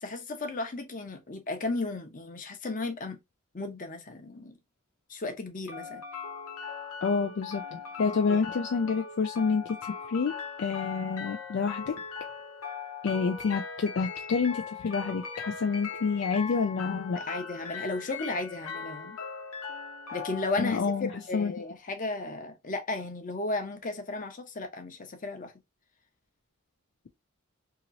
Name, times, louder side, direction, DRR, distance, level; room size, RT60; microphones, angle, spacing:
voice 1, 0.0-3.2 3.5-4.5 5.1-6.0 8.3-8.4 17.1-19.2 20.1-25.5, left 2 dB, 40° left, 0.8 m, -34 dB
sound 1, 5.7-21.7, left 5 dB, 80° left, 0.9 m, -40 dB
voice 2, 7.0-9.8 10.1-10.3 10.6-12.0 13.0-17.2 20.6-21.5, left 5 dB, 55° left, 0.4 m, -28 dB
2.9 x 2.9 x 2.5 m
head